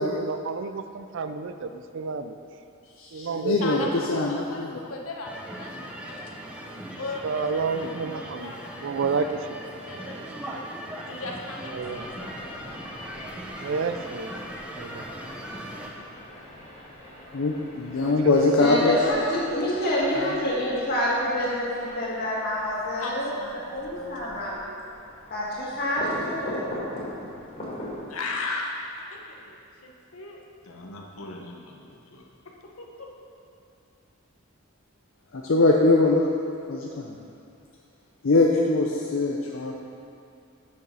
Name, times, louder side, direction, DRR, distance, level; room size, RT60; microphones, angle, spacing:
voice 1, 0.0-2.4 3.1-3.9 7.2-8.5 8.8-9.4 11.7-12.1 13.6-14.3 14.7-15.0 18.0-18.8 19.0-19.2, right 4 dB, 60° right, 9 dB, 0.4 m, -30 dB
voice 2, 3.0-4.8 17.3-19.0 20.1-20.3 35.3-36.3 36.7-37.2 38.2-39.9, left 2 dB, 65° left, -1 dB, 0.6 m, -22 dB
voice 3, 3.6-6.5 7.0-9.4 9.8-10.6 11.1-12.6 23.0-24.2 28.1-30.4 30.6-32.3 32.8-33.1, left 3 dB, 85° left, 0 dB, 1.0 m, -38 dB
sound 1, 5.2-15.9, right 1 dB, 5° right, 0.6 m, -39 dB
sound 2, 11.7-28.0, left 1 dB, 30° left, 2.2 m, -42 dB
voice 4, 18.6-23.3 23.6-24.6 25.3-26.7, left 1 dB, 50° left, -6 dB, 2.0 m, -27 dB
6.7 x 6.4 x 5.6 m, 2.5 s
head